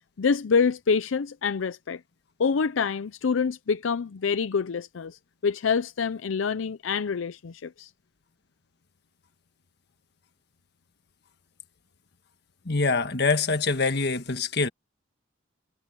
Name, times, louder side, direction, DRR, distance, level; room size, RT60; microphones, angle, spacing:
voice 1, 0.2-2.0 2.4-7.9, left 5 dB, 85° left, 0.5 m, -26 dB
voice 2, 12.6-14.7, left 4 dB, 55° left, 1.6 m, -24 dB
head